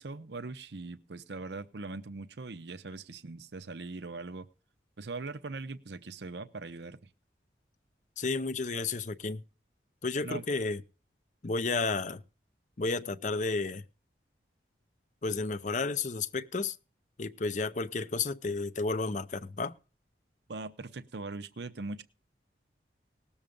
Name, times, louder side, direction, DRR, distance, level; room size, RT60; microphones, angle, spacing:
voice 1, 0.0-4.5 5.0-7.1 10.2-10.4 20.5-22.0, right 3 dB, 70° right, 0.7 m, -41 dB
voice 2, 8.2-9.4 10.0-10.8 11.4-12.2 12.8-13.8 15.2-16.8 17.2-19.7, left 3 dB, 45° left, 0.7 m, -32 dB
19.0 x 7.2 x 5.2 m
head